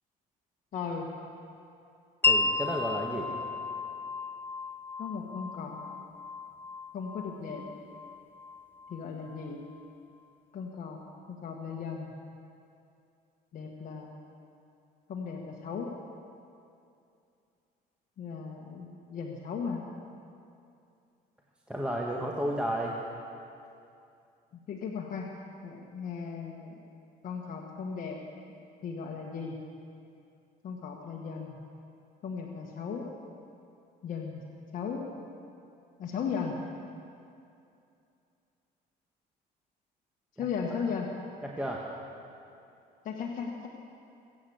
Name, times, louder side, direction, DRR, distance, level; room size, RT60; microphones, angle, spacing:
voice 1, 0.7-1.1 5.0-5.8 6.9-7.6 8.9-9.6 10.5-11.0 11.3-12.1 13.5-14.2 15.1-15.9 18.2-19.8 24.7-25.3 25.6-26.8 27.2-28.2 28.8-29.6 30.6-31.6 32.2-33.1 34.0-34.4 34.7-35.0 36.0-36.6 40.4-41.1 43.0-43.7, left 6 dB, 55° left, -1 dB, 1.4 m, -36 dB
Wind chime, 2.2-9.9, left 3 dB, 10° left, 0.7 m, -34 dB
voice 2, 2.2-3.3 21.7-23.0 40.4-40.5 41.4-41.8, equal, 5° right, -2 dB, 1.4 m, -32 dB
23.0 x 8.6 x 7.0 m, 2.6 s
cardioid pair, 110°, 17 cm